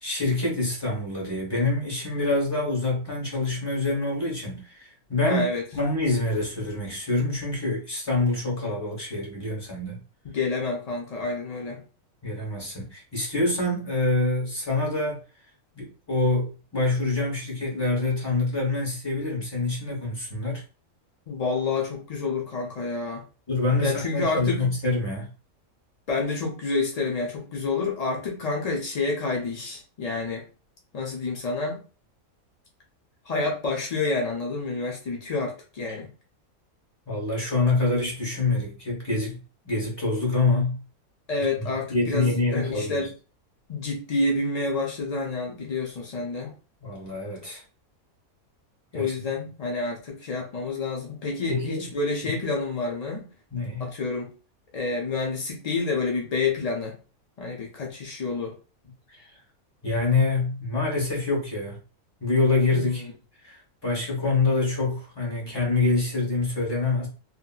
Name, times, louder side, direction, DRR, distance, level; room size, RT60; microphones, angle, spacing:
voice 1, 0.0-5.4 5.7-10.0 12.2-15.2 15.7-20.6 23.5-25.3 37.1-39.4 39.6-40.8 41.6-43.1 46.8-47.6 48.9-49.2 51.5-51.9 52.2-52.3 53.5-53.9 57.4-57.5 59.1-59.3 59.8-61.8 62.2-63.1 63.4-67.1, left 3 dB, 20° left, 1.0 m, -26 dB
voice 2, 5.2-5.6 10.2-11.8 21.3-23.2 23.8-24.6 26.1-30.4 30.9-31.8 33.3-36.1 41.3-43.1 43.7-46.5 48.9-53.3 53.8-54.3 54.7-57.0 57.4-58.5 62.7-63.1, left 3 dB, 80° left, 0.3 m, -28 dB
2.7 x 2.7 x 2.4 m
omnidirectional pair, 1.5 m